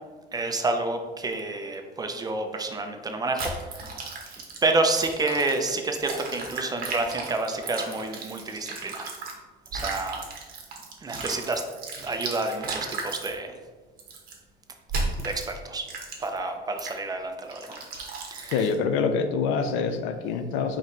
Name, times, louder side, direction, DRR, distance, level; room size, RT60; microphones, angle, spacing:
voice 1, 0.3-4.1 4.6-9.1 9.7-10.2 11.0-11.7 12.0-13.6 15.2-15.9 16.2-17.8 18.3-18.6, right 2 dB, 20° right, 5 dB, 0.5 m, -29 dB
sound 1, 3.4-9.3 9.6-13.3 14.0-14.3 14.9-15.5 15.9-16.4 16.8-17.0 17.5-18.7, right 3 dB, 50° right, 1.0 m, -35 dB
voice 2, 18.5-20.8, left 5 dB, 90° left, 8 dB, 0.5 m, -25 dB
4.1 x 3.1 x 3.9 m, 1.4 s
cardioid pair, 120°, 19 cm